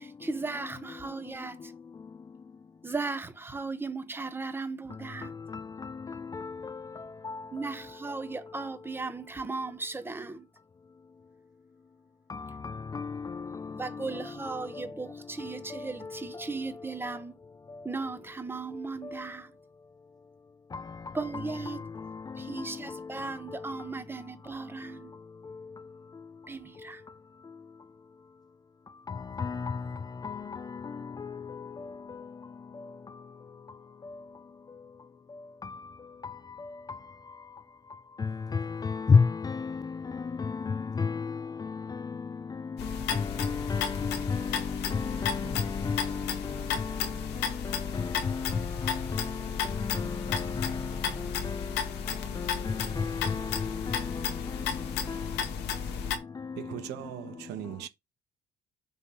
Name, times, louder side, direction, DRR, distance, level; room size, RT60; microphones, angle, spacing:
voice 1, 0.0-1.7 2.8-5.4 7.5-10.5 13.7-17.3 17.8-19.5 21.1-21.8 22.4-25.1 26.5-27.0, right 3 dB, 15° right, 1.0 m, -37 dB
voice 2, 1.0-2.6 4.9-7.7 8.1-8.4 12.3-16.5 17.0-17.2 17.7-17.9 18.7-19.3 20.7-21.2 21.7-23.9 24.6-27.9 28.9-56.9, left 5 dB, 25° left, 0.4 m, -35 dB
sound 1, 42.8-56.2, left 7 dB, 80° left, 1.8 m, -34 dB
voice 3, 56.6-57.9, right 13 dB, 85° right, 1.0 m, -39 dB
7.1 x 3.3 x 5.5 m
cardioid pair, 110°, 17 cm